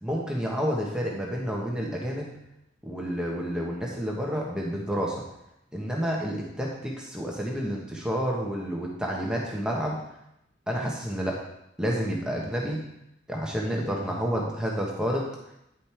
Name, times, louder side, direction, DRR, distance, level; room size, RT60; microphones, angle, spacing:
voice 1, 0.0-2.3 2.8-5.1 5.7-10.0 10.7-11.4 11.8-12.8 13.3-15.3, equal, 5° right, -2 dB, 1.1 m, -29 dB
10.0 x 5.3 x 4.5 m, 0.82 s
head